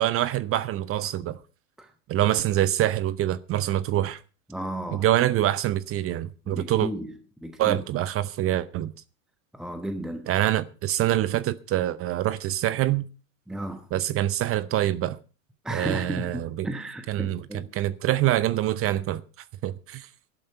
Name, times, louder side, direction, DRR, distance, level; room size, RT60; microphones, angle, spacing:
voice 1, 0.0-1.4 2.1-4.2 4.9-6.9 7.6-8.9 10.3-13.1 13.9-15.2 15.7-16.7 17.1-17.4 17.7-19.2 19.6-20.1, right 13 dB, 30° right, 0.7 m, -25 dB
voice 2, 4.5-5.1 6.5-7.8 9.5-10.3 13.5-13.9 15.6-17.7, right 1 dB, ahead, 1.0 m, -34 dB
13.0 x 11.5 x 5.6 m
supercardioid pair, 120°, 43 cm